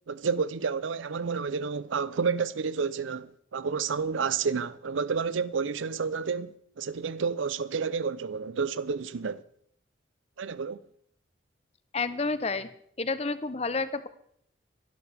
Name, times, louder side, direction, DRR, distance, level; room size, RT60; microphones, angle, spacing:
voice 1, 0.1-9.4 10.4-10.9, right 5 dB, 80° right, 0.5 m, -30 dB
voice 2, 11.9-12.7 13.0-14.1, left 3 dB, 30° left, 0.7 m, -30 dB
23.0 x 11.5 x 3.4 m
head